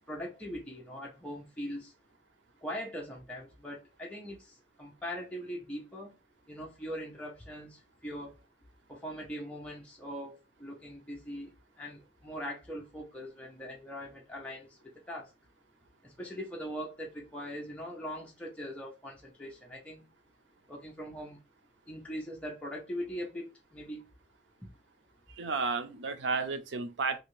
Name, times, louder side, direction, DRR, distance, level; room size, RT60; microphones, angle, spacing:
voice 1, 0.1-1.9 2.6-6.2 6.5-8.4 8.9-15.3 16.0-20.1 20.7-21.4 21.9-24.1 24.6-24.7, equal, 5° left, 0.7 m, -41 dB
voice 2, 25.4-27.2, right 4 dB, 85° right, 0.6 m, -32 dB
3.2 x 2.8 x 3.1 m
head